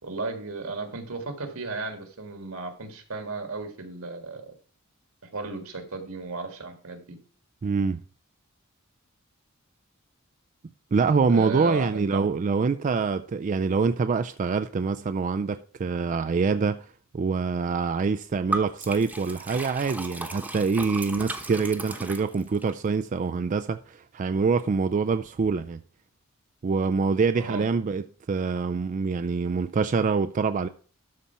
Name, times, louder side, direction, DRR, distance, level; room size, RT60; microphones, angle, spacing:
voice 1, 0.0-4.5 5.2-7.2 11.3-12.3 27.3-27.7, right 3 dB, 75° right, 1.8 m, -35 dB
voice 2, 7.6-8.0 10.9-16.9 17.1-25.8 26.6-28.0 28.3-30.7, right 5 dB, 35° right, 0.3 m, -25 dB
Liquid, 18.5-22.7, right 2 dB, 5° right, 1.0 m, -35 dB
12.5 x 4.3 x 5.7 m
head